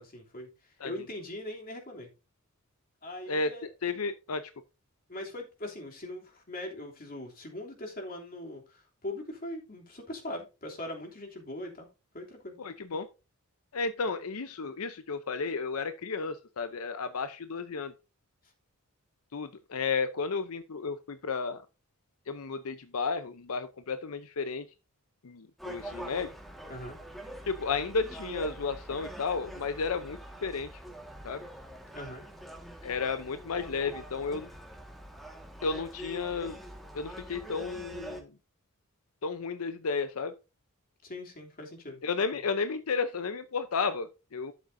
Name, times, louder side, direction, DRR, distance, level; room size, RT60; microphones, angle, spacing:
voice 1, 0.0-2.1 3.0-3.7 5.1-11.9 12.1-12.5 26.7-27.0 31.9-32.3 41.0-42.0, left 1 dB, 45° left, 2.9 m, -41 dB
voice 2, 3.8-4.4 12.6-13.1 13.7-17.9 19.3-21.6 22.3-24.6 25.2-26.3 27.5-30.7 31.2-31.4 32.8-34.5 35.6-36.6 36.9-38.3 39.2-40.3 42.0-44.5, left 4 dB, 85° left, 0.7 m, -33 dB
Gull seagull, 25.6-38.2, equal, ahead, 1.6 m, -44 dB
11.5 x 7.9 x 2.6 m
head